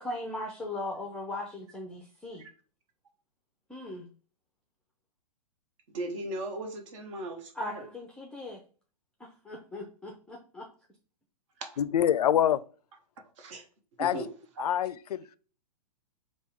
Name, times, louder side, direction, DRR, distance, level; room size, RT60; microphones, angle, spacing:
voice 1, 0.0-2.4 3.7-4.1 7.5-8.6 9.2-10.7, left 2 dB, 5° left, 0.5 m, -38 dB
voice 2, 5.9-7.8 11.6-11.7 13.4-13.6 14.0-14.3 14.6-14.7, right 1 dB, 50° right, 1.3 m, -37 dB
voice 3, 11.8-12.6 14.0-14.2 14.6-15.4, left 10 dB, 75° left, 0.4 m, -25 dB
3.6 x 2.3 x 4.4 m
hypercardioid pair, 130°, 20 cm